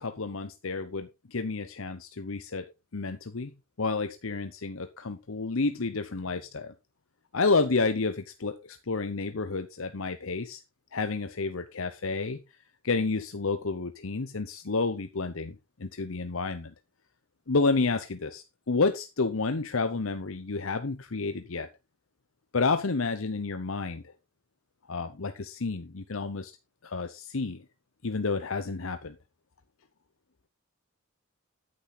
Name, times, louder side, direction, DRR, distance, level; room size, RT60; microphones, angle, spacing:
voice 1, 0.0-2.7 2.9-3.5 3.8-6.7 7.3-10.6 10.9-12.4 12.8-16.7 17.5-21.7 22.5-24.1 24.9-26.5 26.8-27.6 28.0-29.2, left 3 dB, 75° left, 9 dB, 0.8 m, -30 dB
9.5 x 8.5 x 4.0 m, 0.25 s
head